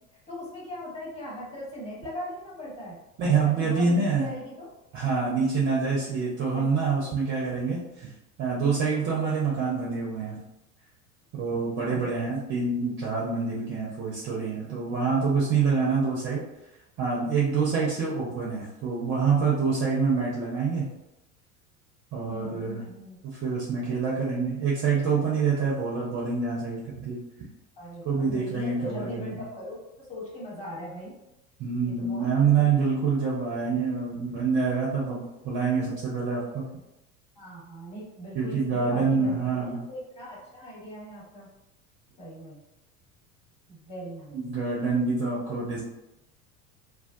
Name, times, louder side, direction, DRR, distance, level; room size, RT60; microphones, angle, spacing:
voice 1, 0.3-4.7 6.5-6.8 11.8-12.2 17.7-17.8 22.3-23.2 27.8-31.1 31.8-32.7 37.4-41.5 42.2-42.6 43.7-44.4 45.5-45.8, equal, 15° left, -6 dB, 1.1 m, -40 dB
voice 2, 3.2-4.3 4.9-8.1 8.4-10.4 11.3-16.4 17.0-20.9 22.1-22.8 23.2-27.2 28.0-29.4 31.6-36.6 38.3-39.8 44.3-45.8, right 5 dB, 25° right, -5 dB, 0.5 m, -26 dB
2.2 x 2.2 x 2.6 m, 0.90 s
figure-of-eight pair, 75°, 46 cm